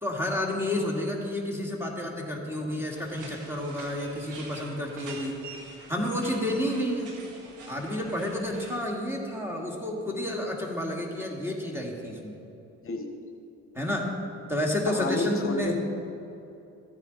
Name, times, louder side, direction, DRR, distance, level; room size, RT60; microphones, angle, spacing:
voice 1, 0.0-5.3 5.9-7.1 7.7-12.4 13.8-14.1 14.5-15.8, left 1 dB, 10° right, 0 dB, 1.9 m, -30 dB
sound 1, 2.9-8.8, right 3 dB, 85° right, 1.8 m, -46 dB
voice 2, 14.9-15.8, left 3 dB, 45° left, 4 dB, 0.9 m, -30 dB
13.5 x 9.0 x 4.0 m, 2.8 s
cardioid pair, 90°, 30 cm